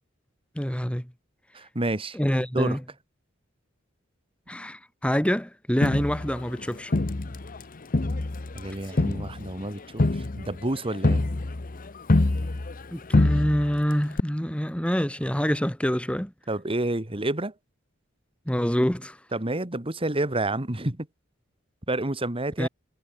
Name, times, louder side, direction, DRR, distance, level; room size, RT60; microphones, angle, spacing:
voice 1, 0.6-1.1 2.1-2.8 4.5-6.9 12.9-16.3 18.5-19.2 22.6-22.7, equal, 5° left, 1.9 m, -26 dB
voice 2, 1.5-2.2 2.5-2.8 8.5-11.3 16.5-17.5 19.3-21.1 21.9-22.7, right 2 dB, 25° right, 2.0 m, -29 dB
Crowd, 5.8-7.6 7.9-12.9 13.1-13.8 14.2-14.3, left 2 dB, 45° left, 0.9 m, -25 dB
head